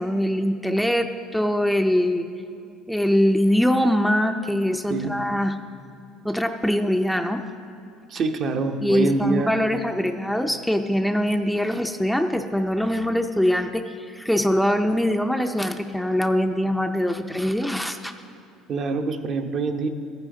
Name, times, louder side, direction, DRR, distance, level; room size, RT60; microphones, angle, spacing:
voice 1, 0.0-2.3 2.9-5.5 6.2-7.4 8.8-18.1, equal, ahead, 5 dB, 0.5 m, -23 dB
voice 2, 8.1-9.6 18.7-19.9, right 3 dB, 50° right, 5 dB, 0.8 m, -25 dB
14.0 x 9.9 x 3.8 m, 2.6 s
supercardioid pair, 100°, 0 cm